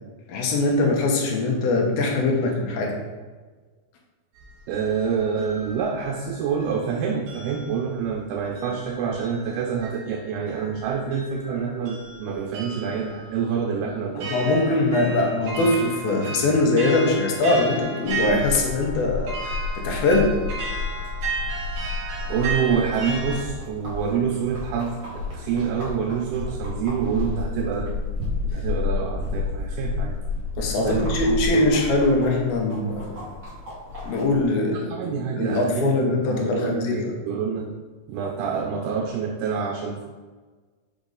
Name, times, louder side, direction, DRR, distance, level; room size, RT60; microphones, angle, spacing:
voice 1, 0.3-2.9 14.2-19.3 19.8-20.4 30.6-33.2 34.0-37.1, left 2 dB, 80° left, 0 dB, 3.0 m, -22 dB
sound 1, 4.4-6.9 7.3-23.4, right 3 dB, 65° right, 1.3 m, -35 dB
voice 2, 4.7-14.8 15.1-15.2 22.3-27.9 28.5-30.2 30.8-31.6 34.7-37.7 38.1-40.0, right 6 dB, 85° right, 1 dB, 2.7 m, -27 dB
sound 2, 18.1-34.5, left 4 dB, 35° right, 2.2 m, -31 dB
6.3 x 6.1 x 4.0 m, 1.4 s
omnidirectional pair, 4.4 m